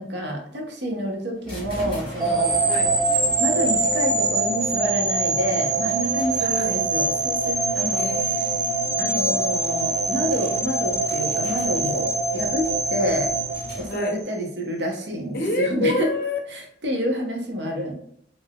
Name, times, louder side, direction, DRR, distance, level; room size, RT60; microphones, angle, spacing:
voice 1, 0.0-2.5 3.4-8.1 9.0-13.3 13.8-16.1 16.5-17.9, equal, 75° right, 1 dB, 0.7 m, -28 dB
sound 1, 1.4-14.2, equal, 25° left, 1.1 m, -39 dB
sound 2, 2.2-14.3, right 3 dB, 20° right, 0.4 m, -24 dB
voice 2, 6.4-6.8 8.0-8.9 13.9-14.1 15.3-16.4, left 2 dB, 55° left, 3 dB, 0.6 m, -28 dB
3.4 x 2.5 x 2.3 m, 0.67 s
head